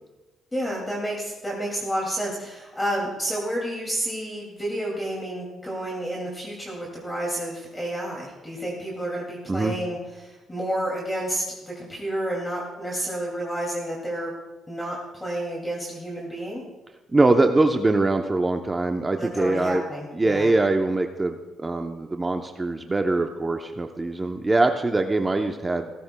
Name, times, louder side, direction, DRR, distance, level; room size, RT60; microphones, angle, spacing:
voice 1, 0.5-14.3 14.7-16.6 19.2-20.5, right 1 dB, 15° left, -2 dB, 2.4 m, -30 dB
voice 2, 17.1-19.8 20.1-25.9, right 2 dB, 20° right, 5 dB, 0.7 m, -23 dB
17.0 x 15.5 x 2.2 m, 1.2 s
cardioid pair, 90°, 0 cm